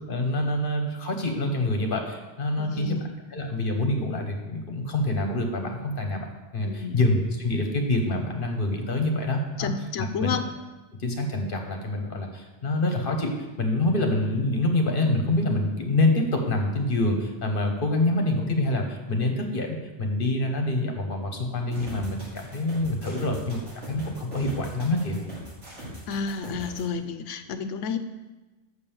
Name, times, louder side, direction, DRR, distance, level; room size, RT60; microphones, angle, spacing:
voice 1, 0.0-3.0 3.3-9.7 10.0-10.3 11.0-13.3 13.6-25.2, left 2 dB, 50° left, 3 dB, 1.3 m, -26 dB
voice 2, 2.6-3.1 6.6-7.0 9.6-10.4 26.1-28.0, left 6 dB, 80° left, 9 dB, 1.0 m, -31 dB
sound 1, 21.7-26.8, equal, 60° right, 2.9 m, -40 dB
6.7 x 5.3 x 7.1 m, 1.2 s
omnidirectional pair, 1.2 m